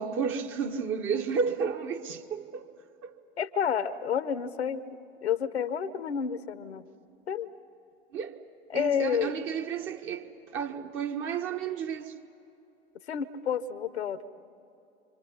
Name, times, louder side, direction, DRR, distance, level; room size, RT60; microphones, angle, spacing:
voice 1, 0.0-2.7 3.0-3.2 8.1-8.4 8.7-12.1, right 6 dB, 40° right, 1.7 m, -32 dB
voice 2, 3.4-4.8 5.2-6.8 7.3-7.5 8.7-9.3 13.1-14.2, left 8 dB, 80° left, 1.1 m, -30 dB
26.5 x 26.0 x 5.6 m
figure-of-eight pair, 85°, 32 cm